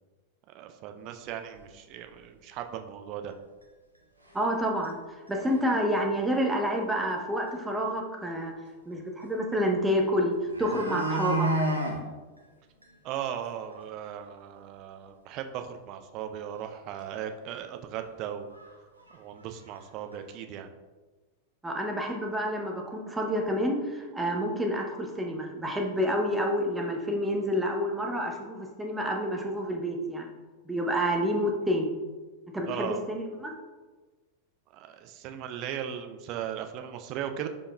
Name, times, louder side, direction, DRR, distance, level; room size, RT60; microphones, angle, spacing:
voice 1, 0.5-3.3 13.0-18.4 19.1-20.7 32.7-33.1 34.7-37.5, right 10 dB, 40° right, 6 dB, 0.4 m, -37 dB
cattle brethe, 1.5-1.6 2.1-2.2 2.6-2.7 3.6-3.7 4.3-4.6 4.8-4.9 5.3-5.7 7.1-7.2 7.5-7.6 9.9-10.0 10.3-12.0 12.4-12.5 12.8-12.9 13.3-13.4 13.7-13.8 16.6-16.7 17.1-17.2 18.0-18.1 18.5-18.7 19.0-19.8 20.1-20.2, right 1 dB, 85° right, 0.6 m, -31 dB
voice 2, 4.3-5.0 5.3-8.5 8.9-11.5 21.6-30.3 30.6-31.9 32.5-33.5, equal, 10° right, 1 dB, 0.7 m, -28 dB
4.9 x 4.6 x 2.2 m, 1.3 s
figure-of-eight pair, 90°, 0 cm